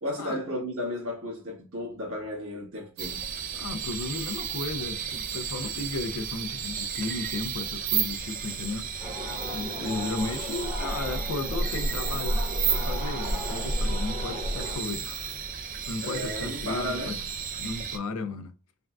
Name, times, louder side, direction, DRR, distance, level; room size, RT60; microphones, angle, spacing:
voice 1, 0.0-3.2 16.0-17.2, left 1 dB, 70° right, 1.4 m, -34 dB
sound 1, 3.0-18.0, right 7 dB, 40° right, 0.4 m, -33 dB
voice 2, 3.5-8.9 9.5-12.4 12.7-15.3 15.9-17.2 17.6-18.5, left 3 dB, 90° left, 0.5 m, -34 dB
sound 2, 9.0-14.8, equal, 15° right, 0.9 m, -31 dB
3.5 x 2.3 x 2.3 m
head